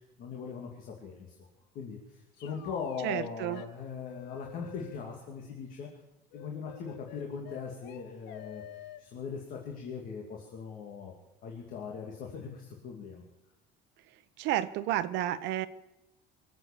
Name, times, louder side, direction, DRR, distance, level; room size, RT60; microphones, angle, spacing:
voice 1, 0.2-1.5 1.7-2.0 2.4-5.9 6.3-8.6 9.0-11.1 11.4-13.2, left 6 dB, 50° left, 0 dB, 2.5 m, -40 dB
sound 1, 2.4-3.2 3.5-3.7 4.0-5.0 6.3-9.0, left 11 dB, 70° left, 1.2 m, -48 dB
voice 2, 3.0-3.6 14.4-15.7, right 13 dB, 70° right, 12 dB, 1.0 m, -31 dB
24.5 x 8.2 x 7.3 m, 0.92 s
cardioid pair, 175°, 19 cm